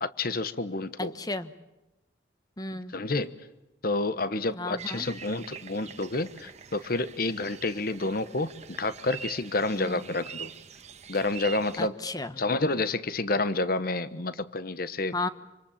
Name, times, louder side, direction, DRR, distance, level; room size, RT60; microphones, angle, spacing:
voice 1, 0.0-1.1 2.9-3.3 3.8-10.5 11.1-12.0 12.4-15.1, left 2 dB, 50° left, 14 dB, 1.1 m, -29 dB
voice 2, 1.0-1.5 2.6-2.9 4.5-5.1 9.8-10.0 11.8-12.4 15.1-15.3, left 2 dB, 20° left, 11 dB, 1.2 m, -33 dB
sound 1, 4.8-11.9, right 7 dB, 35° right, 1.3 m, -45 dB
27.0 x 26.0 x 7.3 m, 1.0 s
head